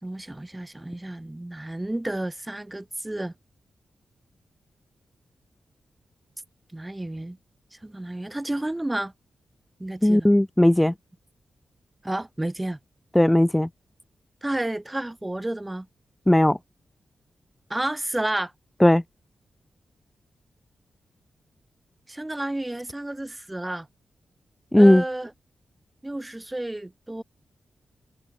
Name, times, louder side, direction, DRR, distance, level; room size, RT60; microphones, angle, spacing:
voice 1, 0.0-3.3 6.7-7.4 7.8-9.1 9.8-10.3 12.0-12.8 14.4-15.9 17.7-18.5 22.1-23.9 24.7-25.3 26.0-27.2, right 1 dB, 20° right, 2.8 m, -31 dB
voice 2, 10.0-10.9 13.2-13.7 16.3-16.6 18.8-19.0 24.7-25.0, left 1 dB, 10° left, 0.5 m, -17 dB
supercardioid pair, 40°, 0 cm